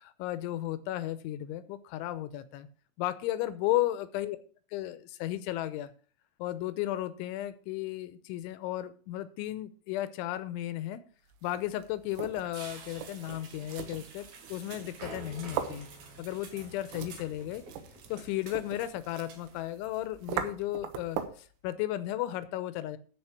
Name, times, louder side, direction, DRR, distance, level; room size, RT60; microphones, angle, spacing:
voice 1, 0.0-2.7 3.0-4.4 4.7-5.9 6.4-11.0 11.4-15.9 16.2-17.6 18.1-23.0, left 14 dB, 85° left, 13 dB, 3.2 m, -34 dB
sound 1, 11.3-21.5, right 9 dB, 85° right, 3.6 m, -41 dB
sound 2, 12.3-19.6, right 5 dB, 60° right, 3.7 m, -51 dB
sound 3, 14.4-21.2, right 1 dB, 40° right, 4.8 m, -49 dB
13.5 x 5.1 x 5.9 m, 0.41 s
omnidirectional pair, 5.4 m